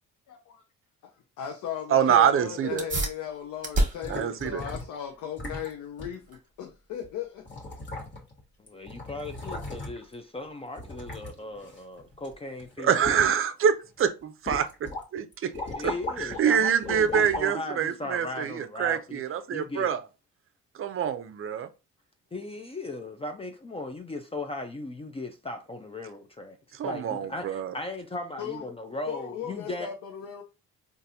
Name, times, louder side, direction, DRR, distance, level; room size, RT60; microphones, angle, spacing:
voice 1, 1.4-7.5 7.9-8.0 28.4-28.7 29.1-30.4, left 9 dB, 80° left, 0.6 m, -37 dB
voice 2, 1.9-2.8 4.1-4.6 12.8-15.5 15.8-15.9 16.2-20.0 20.8-21.7 26.8-27.7, right 8 dB, 45° right, 0.5 m, -25 dB
sound 1, 2.8-12.7, right 2 dB, 25° right, 1.2 m, -36 dB
sound 2, 4.0-5.0 5.4-5.7 6.0-6.1 7.0-7.1 7.5-8.4 8.7-10.1 10.8-12.3 12.6-13.4 13.8-14.0 14.5-15.0 15.3-16.4 16.8-17.5 18.2-18.3, left 2 dB, 35° left, 1.4 m, -37 dB
voice 3, 8.6-13.1 15.8-19.2 19.5-20.0 22.3-26.6 26.8-29.9, left 2 dB, 20° left, 0.5 m, -37 dB
3.9 x 2.6 x 2.7 m
cardioid pair, 90°, 30 cm